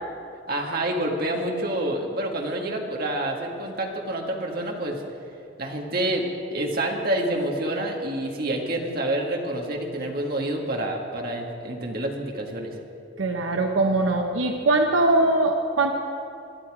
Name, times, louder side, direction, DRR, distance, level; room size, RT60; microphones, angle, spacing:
voice 1, 0.5-5.0 5.6-12.7, right 1 dB, 50° right, 1 dB, 1.9 m, -28 dB
voice 2, 13.2-15.9, right 2 dB, 85° right, 3 dB, 0.9 m, -21 dB
22.0 x 12.0 x 4.9 m, 2.6 s
head